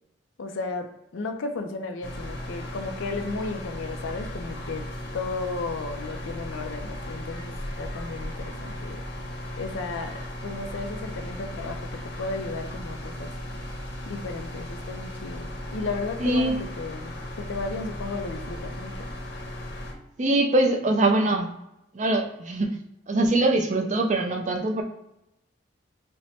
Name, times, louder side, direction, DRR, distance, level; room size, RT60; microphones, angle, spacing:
voice 1, 0.4-9.0 9.6-13.3 14.1-19.1, left 3 dB, 80° left, 5 dB, 0.4 m, -34 dB
sound 1, 2.0-19.9, left 1 dB, 55° left, 0.8 m, -36 dB
voice 2, 16.2-16.7 20.2-21.5 21.9-22.7 23.1-24.8, right 2 dB, 35° right, 3 dB, 0.5 m, -23 dB
4.3 x 2.1 x 4.1 m, 0.87 s
head